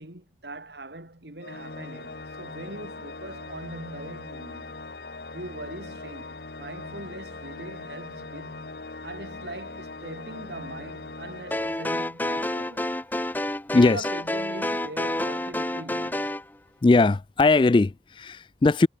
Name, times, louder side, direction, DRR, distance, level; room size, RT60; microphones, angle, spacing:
voice 1, 0.0-4.7 5.3-8.7 9.0-12.9 13.8-16.4, right 2 dB, 75° right, 4.3 m, -41 dB
Organ, 1.4-12.3, left 3 dB, 65° left, 1.5 m, -40 dB
sound 1, 11.5-16.4, left 1 dB, 10° left, 1.0 m, -29 dB
voice 2, 13.7-14.0 16.8-18.9, left 3 dB, 30° left, 0.3 m, -19 dB
head